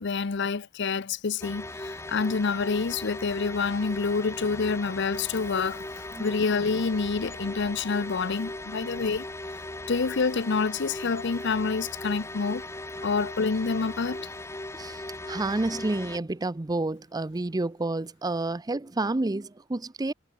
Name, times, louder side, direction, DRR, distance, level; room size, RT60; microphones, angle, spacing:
voice 1, 0.0-9.3 9.9-12.7 13.0-14.3, left 4 dB, 60° left, 0.7 m, -27 dB
sound 1, 1.4-16.2, left 1 dB, 15° left, 1.6 m, -38 dB
voice 2, 14.7-20.1, right 2 dB, 20° right, 0.5 m, -30 dB
head